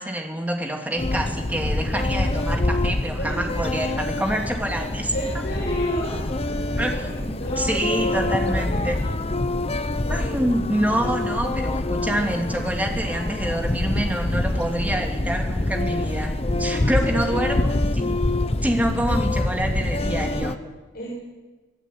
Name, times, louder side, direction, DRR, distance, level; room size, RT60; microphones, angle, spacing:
voice 1, 0.0-5.4 6.8-6.9 7.6-9.0 10.1-17.6 17.9-18.2 18.6-20.6, right 1 dB, 10° right, 2 dB, 3.1 m, -26 dB
sound 1, 1.0-20.5, left 2 dB, 30° left, 0.8 m, -25 dB
voice 2, 5.1-9.1 10.0-10.5 10.9-11.0 16.7-17.7 20.9-21.1, equal, 50° left, -4 dB, 7.0 m, -33 dB
25.5 x 16.5 x 9.6 m, 1.2 s
head